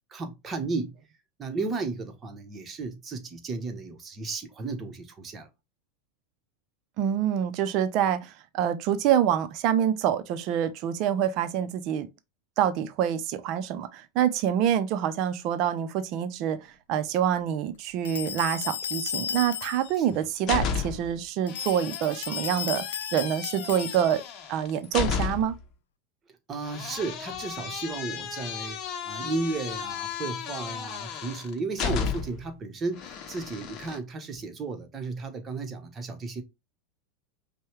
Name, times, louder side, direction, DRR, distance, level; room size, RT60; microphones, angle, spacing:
voice 1, 0.1-1.0 1.4-5.5 20.0-20.3 26.5-36.4, right 3 dB, 30° right, 1.0 m, -34 dB
voice 2, 7.0-12.1 12.6-16.6 16.9-22.9 23.1-24.2 24.5-25.5, right 10 dB, 50° right, 0.6 m, -26 dB
sound 1, 18.0-20.0 21.5-24.4, left 8 dB, 80° left, 0.3 m, -34 dB
sound 2, 19.9-21.2 21.5-25.6 26.6-32.5 33.0-34.0, left 7 dB, 40° left, 0.8 m, -34 dB
5.4 x 2.2 x 3.1 m
hypercardioid pair, 90°, 0 cm